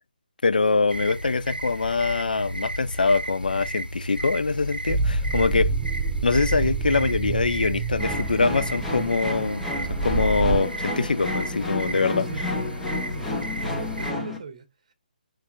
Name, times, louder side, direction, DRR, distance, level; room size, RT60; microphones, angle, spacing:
voice 1, 0.4-5.7 6.2-9.6 10.0-12.3, left 4 dB, 70° left, 0.4 m, -23 dB
sound 1, 0.9-14.1, equal, 90° right, 0.6 m, -34 dB
sound 2, 4.9-10.6, right 3 dB, 15° right, 0.5 m, -27 dB
sound 3, 8.0-14.4, left 1 dB, 5° left, 0.9 m, -31 dB
voice 2, 12.3-12.8 13.1-14.9, right 5 dB, 50° right, 1.0 m, -42 dB
5.7 x 3.1 x 2.4 m
figure-of-eight pair, 140°, 5 cm